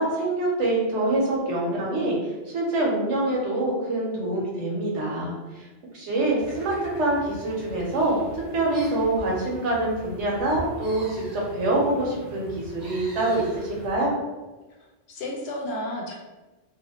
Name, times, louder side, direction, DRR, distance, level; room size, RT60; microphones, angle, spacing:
voice 1, 0.0-5.6 5.9-8.2 8.5-14.1, right 2 dB, 75° right, -3 dB, 1.1 m, -25 dB
sound 1, 6.4-14.0, right 1 dB, 45° right, 0.8 m, -42 dB
voice 2, 14.7-16.1, left 1 dB, 65° left, 0 dB, 0.8 m, -33 dB
2.5 x 2.4 x 2.8 m, 1.1 s
omnidirectional pair, 1.2 m